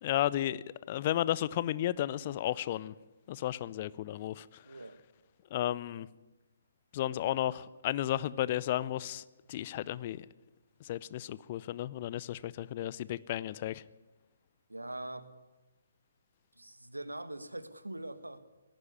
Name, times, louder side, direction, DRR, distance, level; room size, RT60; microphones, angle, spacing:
voice 1, 0.0-2.9 3.3-4.6 5.5-6.1 6.9-10.2 10.8-13.8, left 13 dB, 35° left, 19 dB, 0.6 m, -33 dB
voice 2, 4.6-5.0 14.7-15.3 16.6-18.4, right 1 dB, 80° right, 11 dB, 1.8 m, -42 dB
18.5 x 14.5 x 9.7 m, 1.1 s
figure-of-eight pair, 135°, 0 cm